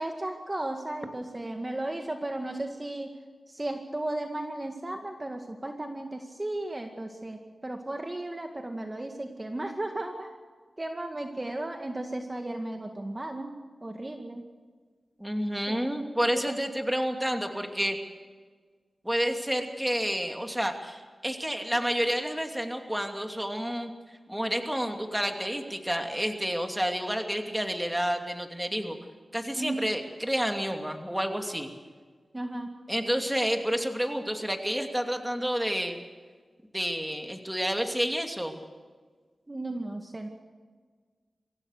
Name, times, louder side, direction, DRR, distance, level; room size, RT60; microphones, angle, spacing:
voice 1, 0.0-3.1 3.5-10.3 10.8-13.5 13.8-14.4 15.7-15.8 16.3-16.6 29.5-29.9 32.3-32.7 39.5-40.3, right 1 dB, 25° right, 4 dB, 1.9 m, -35 dB
voice 2, 15.2-18.0 19.0-23.9 24.3-29.0 29.3-31.7 32.9-36.0 36.7-38.6, equal, 5° right, 4 dB, 2.7 m, -29 dB
24.5 x 16.0 x 6.6 m, 1.5 s
wide cardioid pair, 70°, 0 cm